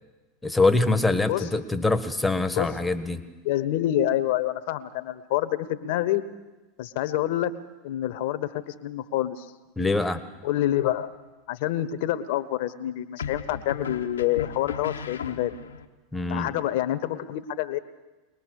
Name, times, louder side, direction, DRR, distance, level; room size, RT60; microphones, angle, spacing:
voice 1, 0.4-3.2 9.8-10.2 16.1-16.5, left 2 dB, 10° left, 10 dB, 1.5 m, -24 dB
voice 2, 1.3-1.6 2.5-2.9 3.4-6.2 6.8-7.5 7.8-9.5 10.4-11.1 11.5-15.5 16.3-17.8, left 13 dB, 65° left, 13 dB, 1.2 m, -27 dB
sound 1, 10.5-11.1 13.2-15.9, left 6 dB, 90° left, 1.2 m, -36 dB
23.0 x 19.5 x 6.6 m, 1.2 s
hypercardioid pair, 95°, 0 cm